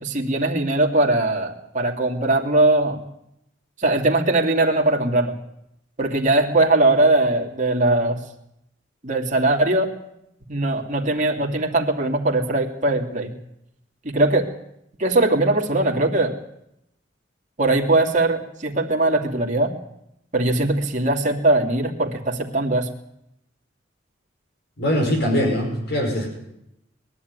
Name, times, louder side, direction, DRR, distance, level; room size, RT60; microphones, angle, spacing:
voice 1, 0.0-3.0 3.8-5.4 6.0-8.2 9.0-9.9 10.5-13.3 14.0-14.5 15.0-16.3 17.6-19.7 20.3-22.9, right 2 dB, 45° right, 1 dB, 2.7 m, -20 dB
voice 2, 24.8-26.3, equal, 60° left, 2 dB, 5.6 m, -22 dB
22.0 x 12.5 x 9.6 m, 0.80 s
head